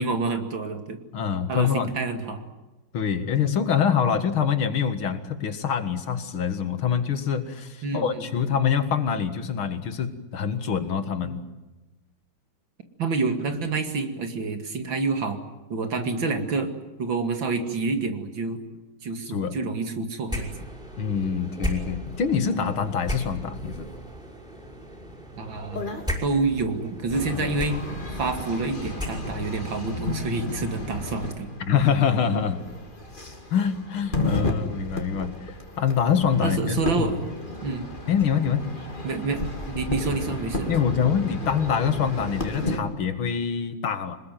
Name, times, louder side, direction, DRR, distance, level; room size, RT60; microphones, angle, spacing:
voice 1, 0.0-1.0 1.5-2.4 7.8-8.3 11.2-11.3 13.0-15.4 15.7-16.7 17.0-18.6 19.0-20.5 25.4-25.9 26.2-27.8 28.2-31.5 36.4-37.3 37.6-37.9 39.0-40.8, right 3 dB, 70° right, 7 dB, 3.1 m, -28 dB
voice 2, 1.1-1.9 2.9-11.4 19.3-19.6 21.0-23.9 31.7-32.6 33.5-37.1 38.1-38.7 40.7-44.2, left 7 dB, 90° left, 10 dB, 2.6 m, -25 dB
sound 1, 20.3-29.6, equal, ahead, 5.8 m, -36 dB
sound 2, 25.7-26.1 27.1-42.8, left 2 dB, 25° left, 3.0 m, -33 dB
26.0 x 20.5 x 9.3 m, 1.1 s
omnidirectional pair, 2.2 m